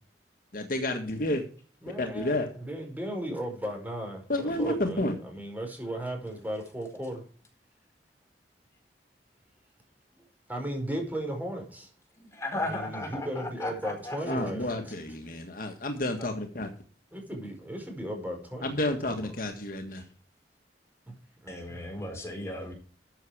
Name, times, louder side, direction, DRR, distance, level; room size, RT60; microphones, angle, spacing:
voice 1, 0.5-1.4 2.0-2.5 4.3-5.1 14.2-16.7 18.6-20.0, left 1 dB, 50° left, 1.8 m, -30 dB
voice 2, 1.8-7.2 10.5-11.9 12.7-14.9 17.1-19.3 21.4-22.1, right 1 dB, 10° right, 4.8 m, -36 dB
voice 3, 12.1-14.3 16.2-16.3 19.9-20.1 21.5-22.7, left 1 dB, 15° left, 4.5 m, -36 dB
13.5 x 7.3 x 4.9 m
head